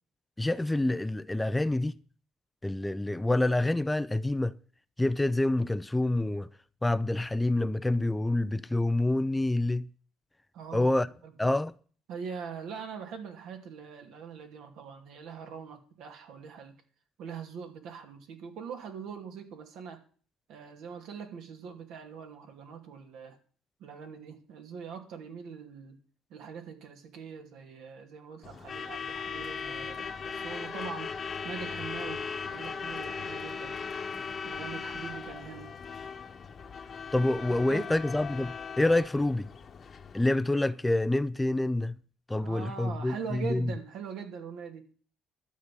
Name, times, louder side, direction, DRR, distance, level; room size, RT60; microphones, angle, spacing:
voice 1, 0.4-2.0 2.6-4.5 5.0-6.5 6.8-9.9 10.7-11.1 11.4-11.7 37.1-39.5 40.1-42.0 42.3-43.7, left 2 dB, 10° left, 0.5 m, -27 dB
voice 2, 10.5-10.9 11.2-11.3 12.1-16.7 17.2-20.0 20.5-23.4 23.8-26.0 26.3-33.8 34.4-35.7 37.4-37.9 42.3-44.8, right 6 dB, 75° right, 2.6 m, -42 dB
Truck / Alarm, 28.4-40.4, left 5 dB, 40° left, 1.2 m, -38 dB
12.5 x 8.2 x 7.5 m
cardioid pair, 100°, 0 cm